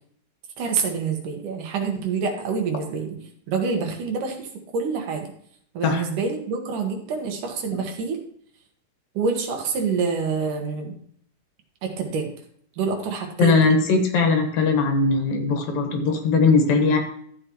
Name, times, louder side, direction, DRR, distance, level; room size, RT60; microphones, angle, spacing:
voice 1, 0.6-3.2 3.5-4.5 4.7-5.3 5.7-8.2 9.2-11.0 11.8-12.3 12.8-13.7, right 5 dB, 70° right, 3 dB, 2.8 m, -26 dB
voice 2, 13.4-17.0, left 4 dB, 80° left, 4 dB, 3.2 m, -19 dB
13.0 x 7.6 x 3.1 m, 0.63 s
omnidirectional pair, 4.0 m